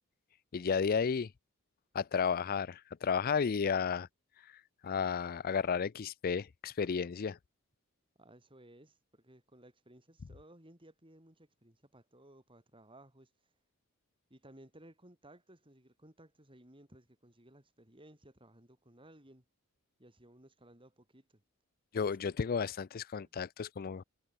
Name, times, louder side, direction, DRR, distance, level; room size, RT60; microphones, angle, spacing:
voice 1, 0.5-1.3 1.9-4.1 4.8-7.4 21.9-24.0, left 6 dB, 40° left, 0.4 m, -32 dB
voice 2, 8.2-13.3 14.3-19.4 20.0-21.4 23.2-23.3, right 1 dB, 25° right, 5.7 m, -59 dB
head